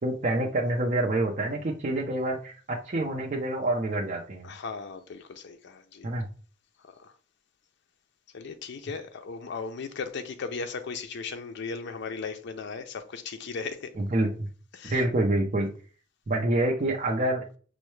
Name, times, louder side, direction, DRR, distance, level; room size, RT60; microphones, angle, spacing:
voice 1, 0.0-4.5 6.0-6.3 14.0-14.5 14.8-15.7 16.3-17.4, right 1 dB, 40° right, 0.5 m, -27 dB
voice 2, 4.4-6.1 7.0-7.1 8.3-13.9 14.7-15.0, left 4 dB, 65° left, 0.4 m, -37 dB
5.4 x 2.1 x 3.1 m
head